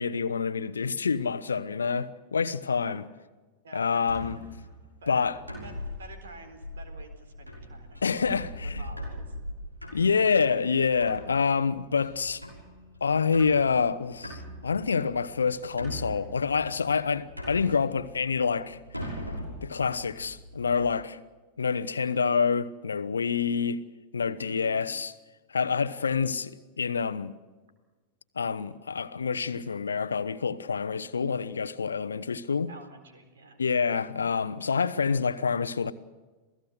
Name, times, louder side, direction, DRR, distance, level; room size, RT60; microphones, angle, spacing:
voice 1, 0.0-3.1 3.7-4.4 5.1-5.4 8.0-8.8 9.9-12.4 13.0-19.1 19.6-21.2 21.6-23.8 24.1-25.1 25.5-27.3 28.3-32.7 33.6-35.9, left 5 dB, 75° left, 0.9 m, -27 dB
voice 2, 3.6-4.5 5.0-8.3 8.8-9.3 24.4-24.8 25.8-26.1 32.7-33.6, right 3 dB, 65° right, 4.0 m, -49 dB
sound 1, 4.0-20.9, equal, 90° right, 6.1 m, -42 dB
27.5 x 17.0 x 7.9 m
figure-of-eight pair, 90°, 0 cm